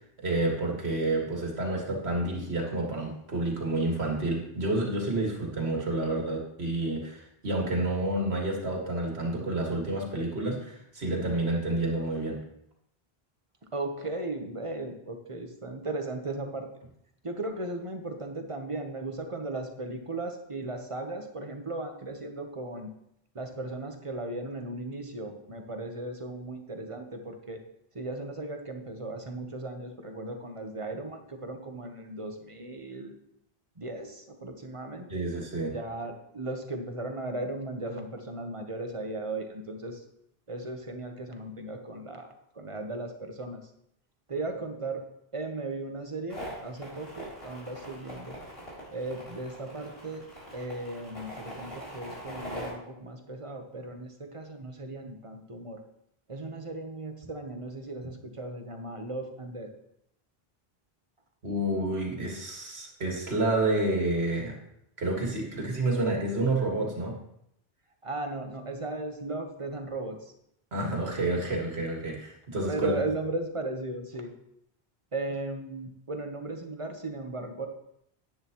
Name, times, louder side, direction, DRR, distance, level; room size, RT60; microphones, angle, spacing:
voice 1, 0.0-12.4 35.1-35.7 61.4-64.5 65.0-67.2 70.7-72.9, right 2 dB, 85° right, 0 dB, 2.2 m, -29 dB
voice 2, 13.6-16.7 17.2-22.9 23.3-27.6 27.9-33.1 33.8-35.2 35.6-40.0 40.5-43.7 44.3-45.1 45.3-48.4 48.9-50.3 50.5-55.8 56.3-59.7 68.0-70.3 72.7-74.3 75.1-77.7, right 2 dB, 30° right, 5 dB, 1.0 m, -36 dB
sound 1, 46.3-52.7, equal, 70° left, 3.6 m, -42 dB
10.5 x 9.8 x 3.0 m, 0.76 s
omnidirectional pair, 1.0 m